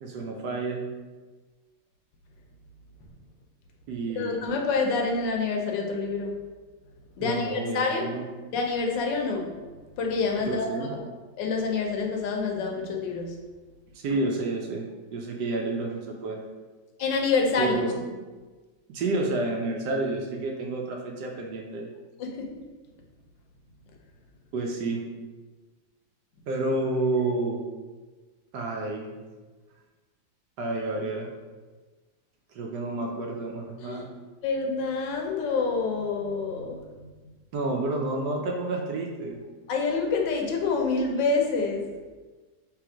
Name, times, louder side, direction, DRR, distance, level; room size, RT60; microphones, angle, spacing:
voice 1, 0.0-0.8 3.9-4.4 7.2-8.3 10.4-11.0 12.7-12.8 13.9-14.8 15.1-16.4 17.6-18.0 18.9-21.9 24.5-25.0 26.5-27.6 28.5-29.1 30.6-31.3 32.5-34.1 37.5-39.4, right 2 dB, 70° right, 1 dB, 1.1 m, -29 dB
voice 2, 4.1-6.3 7.2-8.0 8.5-9.5 10.0-10.9 11.4-13.3 17.0-17.7 22.2-22.5 33.8-34.0 34.4-36.8 39.7-41.8, left 4 dB, 75° left, 1 dB, 1.3 m, -27 dB
3.4 x 3.1 x 4.8 m, 1.3 s
omnidirectional pair, 2.1 m